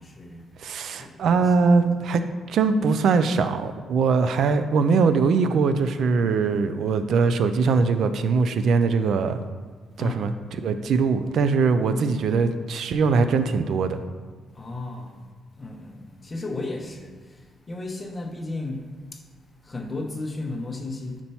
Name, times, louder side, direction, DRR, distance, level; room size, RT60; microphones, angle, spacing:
voice 1, 0.0-0.6 1.0-1.9 10.0-10.3 14.5-19.3 19.6-21.2, left 2 dB, 25° left, 2 dB, 0.8 m, -35 dB
voice 2, 0.6-2.2 2.5-9.4 10.0-10.3 10.6-14.0, right 4 dB, 70° right, 9 dB, 0.3 m, -21 dB
4.3 x 4.3 x 5.5 m, 1.4 s
cardioid pair, 115°, 0 cm